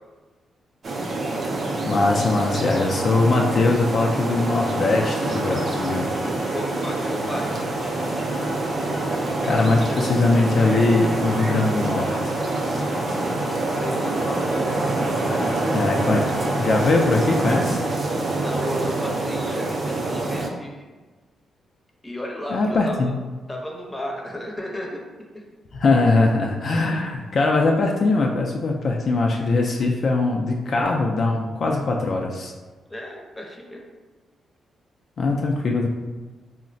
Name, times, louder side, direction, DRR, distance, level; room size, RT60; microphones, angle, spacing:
sound 1, 0.8-20.5, right 2 dB, 50° right, 0.5 m, -25 dB
voice 1, 1.9-6.1 9.4-12.4 15.7-16.3 16.6-17.8 22.5-23.1 25.7-32.5 35.2-35.9, left 3 dB, 55° left, 0 dB, 0.3 m, -21 dB
sound 2, 4.2-17.0, left 1 dB, 90° left, 0.6 m, -40 dB
voice 2, 6.5-8.2 13.5-14.5 15.2-15.6 18.2-20.8 22.0-23.1 23.5-25.0 25.3-25.4 32.9-33.8, left 1 dB, 15° left, -1 dB, 0.7 m, -34 dB
3.7 x 2.1 x 2.5 m, 1.3 s
cardioid pair, 80°, 0 cm